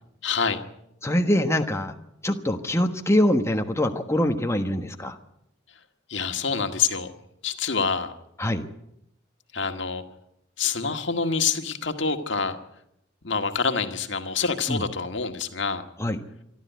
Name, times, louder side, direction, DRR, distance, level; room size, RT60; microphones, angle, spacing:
voice 1, 0.2-0.6 6.1-7.1 7.4-8.1 9.5-10.0 10.6-12.6 13.2-15.9, left 5 dB, 60° left, 6 dB, 1.9 m, -26 dB
voice 2, 1.0-1.9 2.2-5.2 8.4-8.7 14.7-14.8 16.0-16.2, left 1 dB, 15° left, 5 dB, 1.3 m, -24 dB
26.5 x 12.5 x 9.3 m, 0.78 s
head